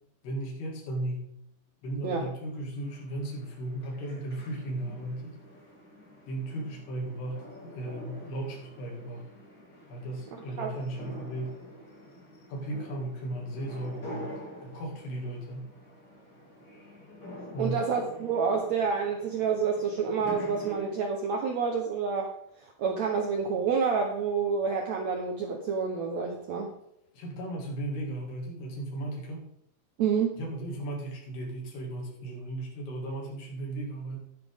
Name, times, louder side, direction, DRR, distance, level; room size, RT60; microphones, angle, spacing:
voice 1, 0.2-1.3 1.8-5.4 6.3-9.3 9.9-11.6 12.5-15.7 17.5-17.8 27.1-29.5 30.4-34.2, right 1 dB, 85° left, -1 dB, 4.3 m, -36 dB
sound 1, 2.8-20.9, equal, 30° left, 3.6 m, -47 dB
voice 2, 17.6-22.3 22.8-26.7 30.0-30.4, right 5 dB, 90° right, 3 dB, 1.5 m, -28 dB
11.5 x 10.5 x 3.6 m, 0.77 s
omnidirectional pair, 4.6 m